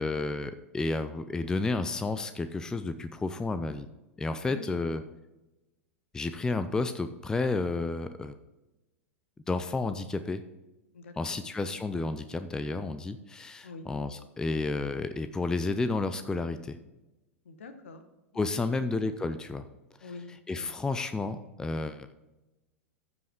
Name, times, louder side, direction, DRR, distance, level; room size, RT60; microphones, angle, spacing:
voice 1, 0.0-3.9 4.2-5.0 6.1-8.3 9.5-10.4 11.2-16.8 18.3-19.6 20.5-22.1, left 3 dB, 10° left, 11 dB, 0.5 m, -31 dB
voice 2, 4.4-4.8 10.9-11.4 13.6-13.9 17.4-18.0 18.3-18.7 20.0-20.7, left 3 dB, 65° left, 9 dB, 1.2 m, -45 dB
14.5 x 5.3 x 3.7 m, 1.0 s
figure-of-eight pair, 95°, 7 cm